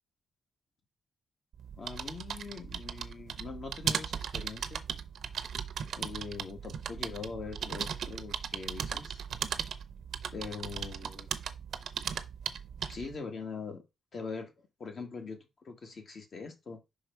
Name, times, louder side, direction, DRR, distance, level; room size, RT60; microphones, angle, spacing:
sound 1, 1.5-13.1, right 7 dB, 70° right, 0.7 m, -37 dB
voice 1, 1.8-4.8 6.0-9.2 10.3-11.3 12.9-13.8 14.1-16.8, left 4 dB, 50° left, 1.8 m, -42 dB
5.7 x 4.7 x 4.6 m
wide cardioid pair, 130°, 0 cm